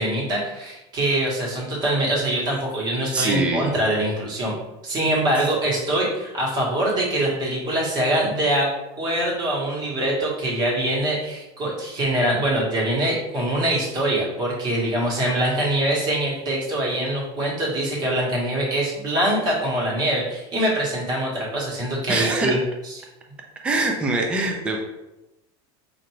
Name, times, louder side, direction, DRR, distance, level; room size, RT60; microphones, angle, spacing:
voice 1, 0.0-4.5 4.8-8.7 9.0-22.6 22.8-23.0, right 1 dB, 30° right, -4 dB, 1.2 m, -23 dB
voice 2, 3.1-3.7 22.1-22.6 23.6-24.8, right 2 dB, 10° right, 2 dB, 0.3 m, -23 dB
4.4 x 2.5 x 3.0 m, 0.96 s
supercardioid pair, 160°, 14 cm